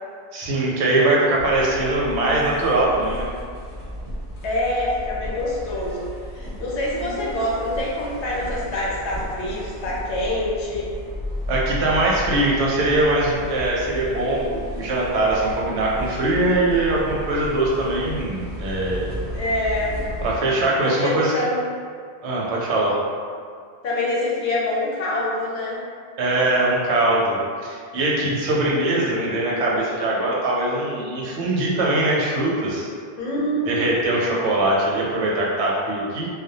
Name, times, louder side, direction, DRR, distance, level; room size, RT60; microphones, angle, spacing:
voice 1, 0.3-3.3 11.5-19.1 20.2-21.4 22.2-23.0 26.2-27.4 27.6-32.9 33.7-36.3, right 2 dB, 90° right, -4 dB, 0.9 m, -22 dB
sound 1, 1.4-20.4, equal, 55° left, 0.8 m, -34 dB
voice 2, 4.4-10.9 19.3-20.0 20.8-21.6 23.8-25.9 33.2-34.1, left 1 dB, 90° left, -5 dB, 0.9 m, -26 dB
2.2 x 2.1 x 2.7 m, 2.1 s
omnidirectional pair, 1.1 m